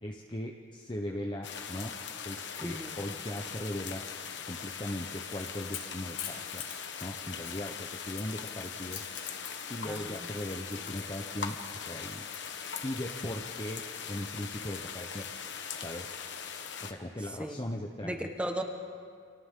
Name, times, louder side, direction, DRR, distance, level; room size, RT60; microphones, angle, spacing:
voice 1, 0.0-2.0 2.2-4.0 4.5-6.6 7.0-9.0 9.7-12.2 12.8-15.3 15.8-16.1 16.8-18.3, left 1 dB, 25° left, 1 dB, 0.9 m, -38 dB
sound 1, 1.4-16.9, left 6 dB, 60° left, 1.2 m, -41 dB
voice 2, 2.6-2.9 9.8-10.4 10.8-10.9 17.4-17.6 18.0-18.6, equal, 5° right, 3 dB, 1.3 m, -36 dB
Crackle / Crack, 5.0-13.2, left 9 dB, 75° left, 3.6 m, -46 dB
29.5 x 27.5 x 3.8 m, 2.2 s
head